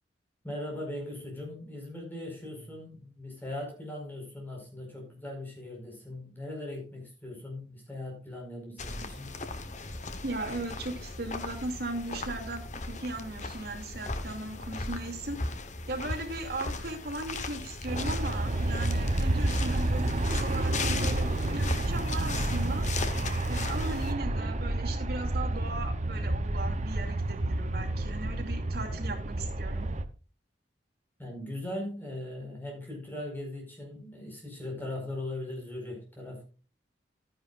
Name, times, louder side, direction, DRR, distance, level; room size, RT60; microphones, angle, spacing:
voice 1, 0.4-9.3 31.2-36.4, left 1 dB, 10° left, 0 dB, 5.0 m, -39 dB
sound 1, 8.8-24.1, left 3 dB, 45° left, 1.1 m, -37 dB
voice 2, 10.2-15.4 15.9-22.9 23.4-29.9, right 2 dB, 65° right, 2 dB, 2.6 m, -37 dB
Aircraft, 17.9-30.1, right 1 dB, 40° right, 0.8 m, -30 dB
13.0 x 10.0 x 2.5 m, 0.36 s
head